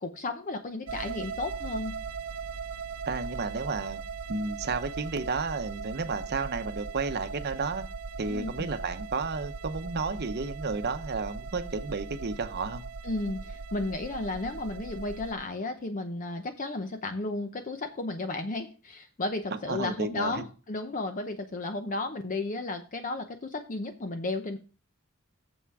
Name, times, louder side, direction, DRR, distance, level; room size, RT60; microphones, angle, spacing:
voice 1, 0.0-1.9 8.3-8.7 13.0-24.6, left 2 dB, 40° left, 7 dB, 0.7 m, -33 dB
sound 1, 0.9-15.3, right 5 dB, 90° right, 0.7 m, -39 dB
voice 2, 3.1-4.0 4.3-7.8 8.2-12.8 19.7-20.4, right 4 dB, 50° right, 9 dB, 0.8 m, -32 dB
7.3 x 5.9 x 4.7 m, 0.35 s
head